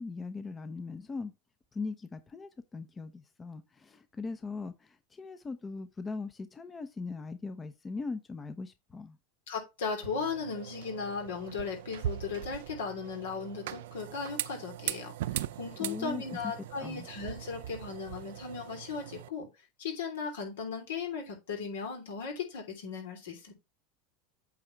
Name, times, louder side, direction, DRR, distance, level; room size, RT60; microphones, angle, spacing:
voice 1, 0.0-1.3 1.7-9.2 15.8-16.4 16.8-17.1, left 4 dB, 20° left, 0.8 m, -40 dB
voice 2, 9.5-15.1 15.6-19.5 19.8-23.5, left 5 dB, 80° left, 3.1 m, -37 dB
sound 1, 10.0-19.3, right 13 dB, 75° right, 0.4 m, -40 dB
8.5 x 3.6 x 4.5 m
hypercardioid pair, 100°, 0 cm